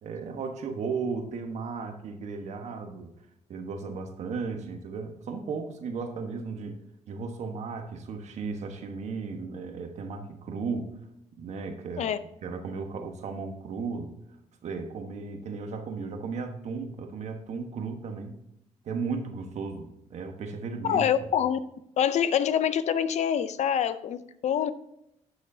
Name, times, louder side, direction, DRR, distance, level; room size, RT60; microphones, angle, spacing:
voice 1, 0.0-3.1 3.5-6.8 7.1-10.9 11.3-12.1 12.4-14.1 14.6-18.4 18.8-21.1, right 4 dB, 65° right, 5 dB, 1.2 m, -35 dB
voice 2, 20.9-21.6 22.0-24.7, left 9 dB, 65° left, 13 dB, 0.6 m, -25 dB
11.5 x 6.4 x 2.7 m, 0.79 s
cardioid pair, 120°, 12 cm